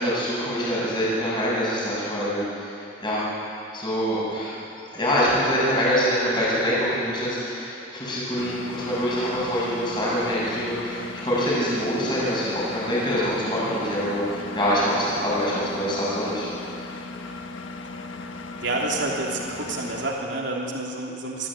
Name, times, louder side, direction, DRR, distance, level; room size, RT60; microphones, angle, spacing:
voice 1, 0.0-3.2 3.7-4.6 4.9-16.5, equal, 25° left, -7 dB, 7.0 m, -25 dB
Engine, 8.4-20.1, left 3 dB, 90° left, 1.3 m, -37 dB
voice 2, 18.6-21.5, right 2 dB, 70° right, -2 dB, 2.9 m, -28 dB
24.5 x 14.5 x 8.9 m, 2.8 s
head